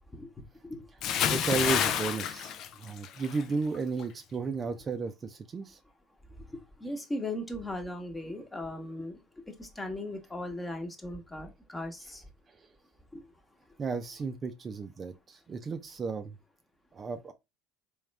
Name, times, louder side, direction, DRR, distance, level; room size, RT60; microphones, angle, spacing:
Bathtub (filling or washing) / Splash splatter, 1.0-3.4 3.7-4.0, left 9 dB, 55° left, 0.4 m, -29 dB
voice 1, 1.3-5.8 12.5-12.7 13.8-16.4 16.9-17.3, right 4 dB, 35° right, 0.5 m, -34 dB
voice 2, 6.8-9.2 9.6-12.2 13.1-13.2, left 1 dB, 15° left, 1.0 m, -37 dB
3.5 x 3.1 x 3.2 m
hypercardioid pair, 70°, 0 cm